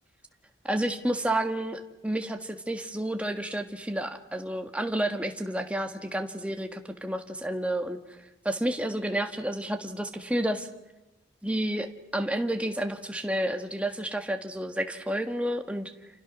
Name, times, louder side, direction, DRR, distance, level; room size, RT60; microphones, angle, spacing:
voice 1, 0.6-8.0 8.4-10.7 11.4-15.9, right 1 dB, 5° right, 5 dB, 1.6 m, -30 dB
29.0 x 28.5 x 6.2 m, 1.0 s
head